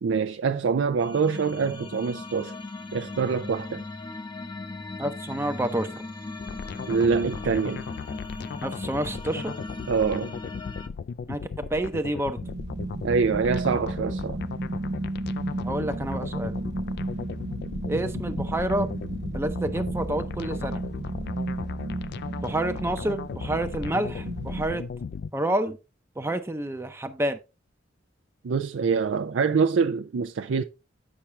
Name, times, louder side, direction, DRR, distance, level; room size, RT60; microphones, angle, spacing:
voice 1, 0.0-2.5 2.9-3.8 6.9-7.8 9.9-10.3 13.0-14.4 28.4-30.6, right 5 dB, 90° right, 0.4 m, -25 dB
sound 1, 1.0-10.9, left 3 dB, 25° left, 0.7 m, -38 dB
voice 2, 5.0-5.9 8.6-9.6 11.3-12.4 15.6-16.6 17.9-18.9 19.3-20.8 22.4-24.8 25.3-25.8 26.2-27.4, right 1 dB, 15° right, 0.6 m, -28 dB
sound 2, 6.4-25.3, left 6 dB, 60° left, 0.3 m, -37 dB
sound 3, 12.4-24.6, right 2 dB, 60° right, 1.1 m, -33 dB
8.6 x 5.8 x 3.2 m
head